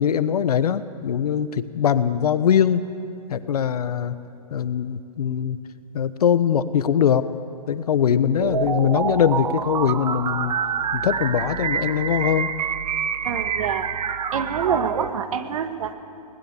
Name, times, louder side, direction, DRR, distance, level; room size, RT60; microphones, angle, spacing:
voice 1, 0.0-2.9 3.3-4.2 4.5-5.6 5.9-7.3 7.7-10.5 10.9-12.5, left 8 dB, 70° left, 13 dB, 1.1 m, -21 dB
sound 1, 8.4-15.1, right 7 dB, 80° right, 1.0 m, -27 dB
voice 2, 13.2-13.9 14.3-15.9, right 7 dB, 60° right, 8 dB, 1.7 m, -26 dB
21.0 x 19.5 x 7.0 m, 2.7 s
hypercardioid pair, 145°, 20 cm